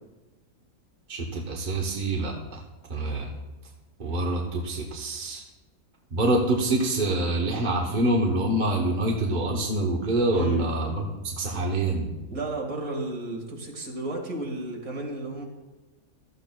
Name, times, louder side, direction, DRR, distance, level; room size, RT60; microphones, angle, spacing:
voice 1, 1.1-2.6 2.9-3.3 4.0-5.4 6.1-12.1, right 1 dB, 40° right, 0 dB, 1.0 m, -26 dB
voice 2, 10.3-10.7 12.3-15.4, right 2 dB, 70° right, 0 dB, 2.2 m, -33 dB
14.5 x 12.5 x 2.2 m, 1.1 s
omnidirectional pair, 1.5 m